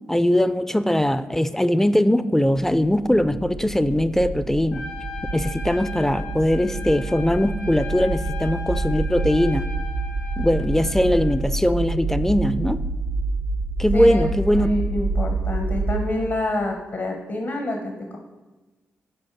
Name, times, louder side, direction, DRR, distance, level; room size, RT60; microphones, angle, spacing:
voice 1, 0.1-4.8 5.3-9.7 10.4-12.8 13.8-14.7, left 1 dB, 10° left, 13 dB, 0.4 m, -20 dB
sound 1, 2.6-16.0, right 3 dB, 85° right, 0.4 m, -28 dB
Trumpet, 4.7-11.4, left 5 dB, 85° left, 1.0 m, -37 dB
voice 2, 13.9-14.3 14.5-18.2, left 2 dB, 60° left, 2 dB, 0.9 m, -27 dB
6.2 x 4.3 x 4.6 m, 1.2 s
supercardioid pair, 45°, 5 cm